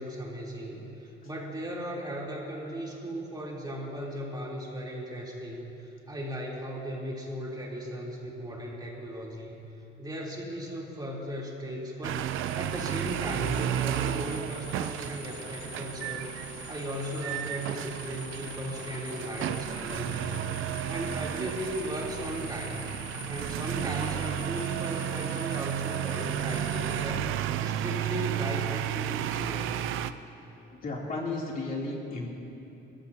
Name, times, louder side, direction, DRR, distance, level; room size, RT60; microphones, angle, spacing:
voice 1, 0.0-9.6 10.0-12.3 12.5-16.3 16.7-22.9 23.3-27.3 27.6-29.7, equal, 20° right, -4 dB, 3.5 m, -37 dB
sound 1, 12.0-30.1, right 11 dB, 90° right, 0.6 m, -33 dB
sound 2, 12.1-27.1, left 6 dB, 80° left, 2.0 m, -46 dB
voice 2, 30.7-32.3, left 2 dB, 45° left, -3 dB, 3.2 m, -34 dB
27.0 x 14.5 x 2.9 m, 3.0 s
cardioid pair, 90°, 20 cm